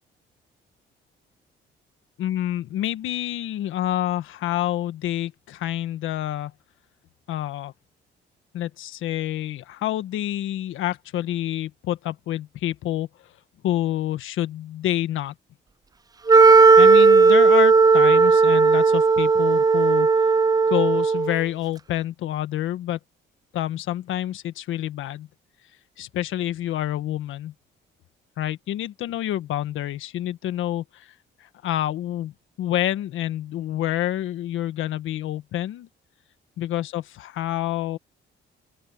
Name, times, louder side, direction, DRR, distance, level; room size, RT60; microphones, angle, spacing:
voice 1, 2.2-6.5 7.3-7.7 8.5-13.1 13.6-15.3 16.8-20.1 20.7-23.0 23.5-25.3 26.0-27.5 28.4-31.1 31.6-32.3 32.6-35.9 36.6-38.0, left 13 dB, 85° left, 1.5 m, -27 dB
Wind instrument woodwind instrument, 16.3-21.4, right 4 dB, 20° right, 0.4 m, -15 dB
open air
cardioid pair, 90°, 20 cm